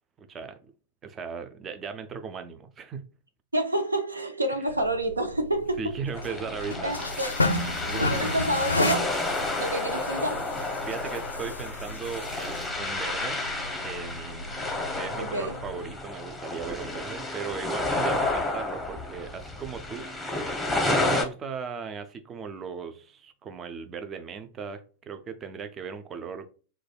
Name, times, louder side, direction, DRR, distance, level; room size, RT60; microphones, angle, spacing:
voice 1, 0.2-0.6 1.0-3.1 5.8-6.9 7.7-8.4 10.8-13.5 13.8-14.6 14.8-26.5, right 6 dB, 25° right, 0.5 m, -37 dB
voice 2, 3.5-5.9 6.8-7.3 8.0-9.1 9.6-10.4 15.2-15.5, right 1 dB, 85° right, 0.5 m, -28 dB
sound 1, 4.7-15.9, left 2 dB, 85° left, 0.4 m, -33 dB
sound 2, 6.1-21.2, left 2 dB, 5° left, 0.8 m, -31 dB
4.7 x 2.3 x 2.2 m
figure-of-eight pair, 90°, 0 cm